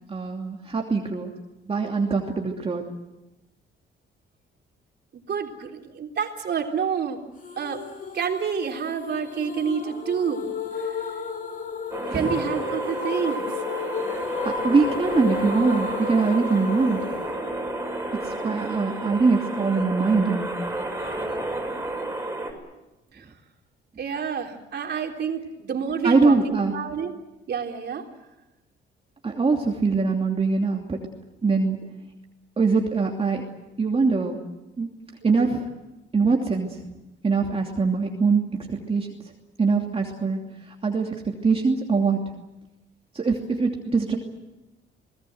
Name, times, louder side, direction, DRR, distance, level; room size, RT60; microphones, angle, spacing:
voice 1, 0.1-1.3 1.7-2.8 12.1-12.4 14.4-17.0 18.2-20.5 26.0-26.7 29.2-31.0 31.4-31.8 32.6-33.4 33.8-34.4 34.8-34.9 35.2-35.7 36.1-36.8 37.2-38.4 38.7-39.1 39.6-40.4 40.7-42.2 43.1-44.2, right 4 dB, 30° right, 1 dB, 2.8 m, -23 dB
voice 2, 5.3-7.2 7.6-7.8 8.1-10.5 10.8-11.1 12.1-13.5 23.1-23.3 24.0-27.1 27.5-28.1, right 7 dB, 55° right, 3 dB, 3.7 m, -28 dB
sound 1, 7.4-18.4, left 5 dB, 45° left, 4.8 m, -33 dB
sound 2, 11.9-22.5, right 2 dB, 10° right, 6.7 m, -31 dB
29.0 x 19.5 x 8.0 m, 1.0 s
cardioid pair, 90°, 20 cm